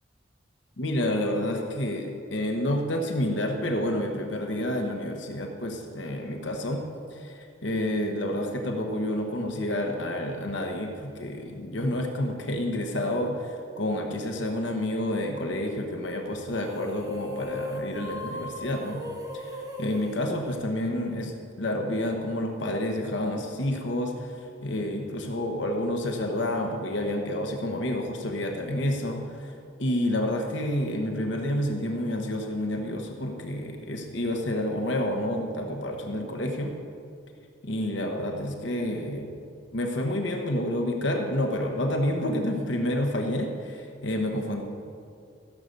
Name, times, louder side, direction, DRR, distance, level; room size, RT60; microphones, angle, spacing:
voice 1, 0.8-6.8 7.1-19.0 19.3-29.5 29.8-36.7 37.6-39.4 39.7-44.6, left 1 dB, 75° left, 2 dB, 1.2 m, -29 dB
sound 1, 16.5-21.2, left 1 dB, 20° right, 1.4 m, -38 dB
15.5 x 6.6 x 6.8 m, 2.3 s
head